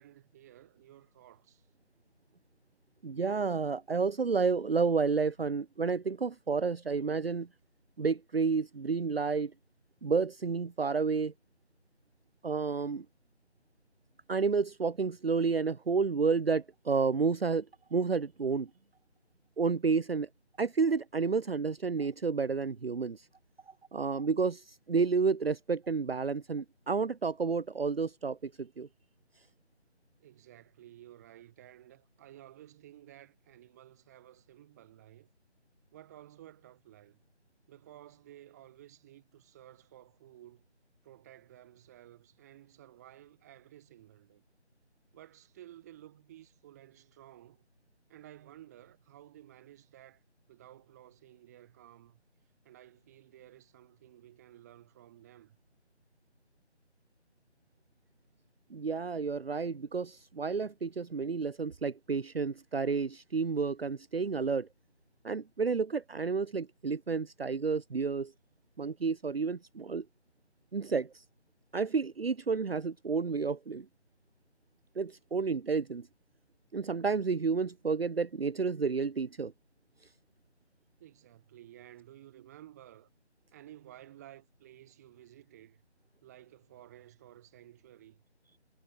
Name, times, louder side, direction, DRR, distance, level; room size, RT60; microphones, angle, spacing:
voice 1, 0.0-1.7 30.2-35.3 35.9-37.2 37.7-40.7 41.0-44.4 45.1-47.6 48.1-50.2 50.5-52.2 52.6-55.6 81.0-83.1 83.5-85.8 86.2-88.2, right 13 dB, 15° right, 5.5 m, -54 dB
voice 2, 3.0-7.5 8.0-9.5 10.0-11.3 12.4-13.0 14.3-17.7 17.9-18.7 19.6-20.3 20.6-23.3 23.9-28.9 58.7-64.7 65.2-68.3 68.8-70.0 70.7-71.2 71.7-73.9 75.0-76.1 76.7-79.5, right 5 dB, 60° right, 0.8 m, -30 dB
figure-of-eight pair, 165°, 35 cm